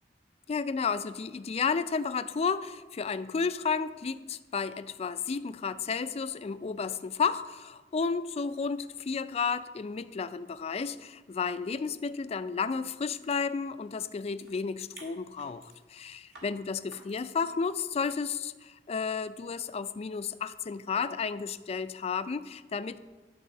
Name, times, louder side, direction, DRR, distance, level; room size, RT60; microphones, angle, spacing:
voice 1, 0.5-23.0, left 5 dB, 35° left, 13 dB, 0.3 m, -32 dB
sound 1, 12.7-12.8 13.1-14.5 14.9-15.8 16.3-16.5 16.9-17.3 18.0-18.2, right 2 dB, 70° right, 2.1 m, -53 dB
11.0 x 4.1 x 6.4 m, 1.3 s
head